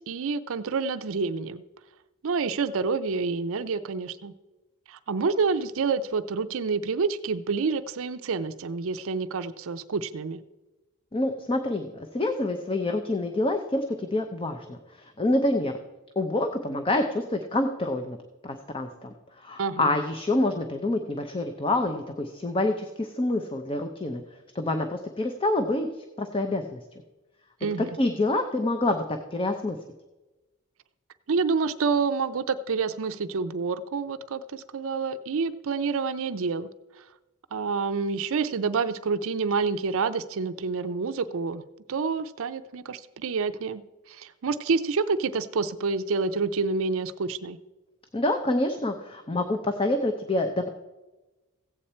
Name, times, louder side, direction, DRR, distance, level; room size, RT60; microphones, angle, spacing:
voice 1, 0.1-1.6 2.2-4.3 4.9-10.4 19.6-19.9 27.6-27.9 31.3-36.7 37.5-41.6 41.9-43.8 44.1-47.6, right 4 dB, 65° right, 12 dB, 0.5 m, -28 dB
voice 2, 11.1-15.8 16.2-18.2 18.4-24.2 24.5-25.9 26.2-26.8 27.8-29.0 29.3-29.8 48.1-50.7, left 2 dB, 25° left, 6 dB, 0.7 m, -27 dB
15.0 x 8.5 x 4.3 m, 1.1 s
head